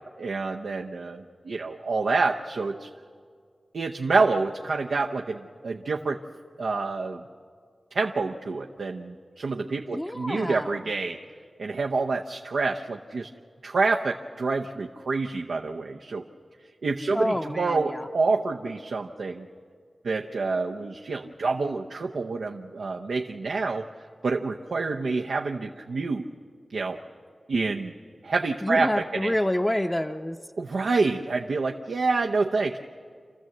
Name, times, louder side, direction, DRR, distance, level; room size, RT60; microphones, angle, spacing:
voice 1, 0.2-2.9 3.7-6.2 6.6-7.2 7.9-11.2 11.6-13.3 13.6-16.2 16.8-19.5 20.0-23.8 24.2-26.3 26.7-27.0 27.5-27.9 28.2-29.3 30.6-32.8, right 3 dB, 85° right, 2 dB, 0.7 m, -27 dB
voice 2, 9.9-10.8 17.1-18.1 28.6-30.4, left 1 dB, 15° left, 3 dB, 0.7 m, -28 dB
27.0 x 14.0 x 7.7 m, 2.1 s
cardioid pair, 50°, 0 cm